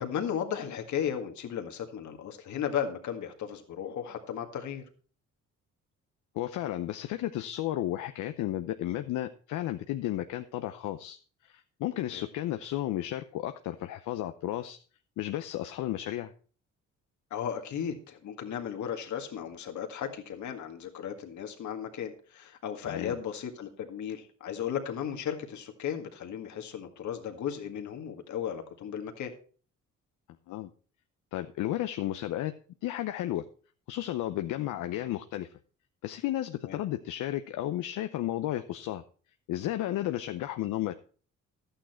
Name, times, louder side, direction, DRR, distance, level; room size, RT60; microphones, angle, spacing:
voice 1, 0.0-4.9 12.1-12.2 17.3-29.3 36.6-36.8, left 8 dB, 70° left, 4 dB, 1.9 m, -35 dB
voice 2, 6.3-11.2 11.4-14.8 15.2-16.3 22.9-23.2 30.5-30.7 31.3-32.5 32.8-33.4 33.9-35.5 36.0-39.0 39.5-40.9, left 13 dB, 85° left, 8 dB, 0.7 m, -33 dB
11.5 x 9.0 x 4.4 m, 0.40 s
cardioid pair, 90°, 30 cm